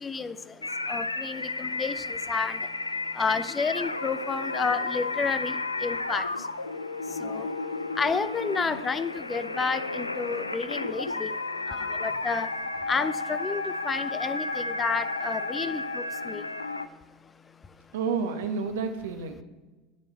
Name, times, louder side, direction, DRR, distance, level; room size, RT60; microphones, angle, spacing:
voice 1, 0.0-0.4 0.9-2.6 3.2-5.6 5.8-6.2 7.2-7.5 8.0-11.3 11.7-12.5 12.9-16.5, left 5 dB, 25° left, 13 dB, 0.6 m, -30 dB
sound 1, 0.6-16.9, left 3 dB, 90° left, 0.3 m, -33 dB
voice 2, 7.3-7.8 11.7-11.8 17.9-19.4, right 5 dB, 65° right, 7 dB, 1.0 m, -31 dB
9.7 x 7.5 x 4.3 m, 1.2 s
figure-of-eight pair, 75°, 0 cm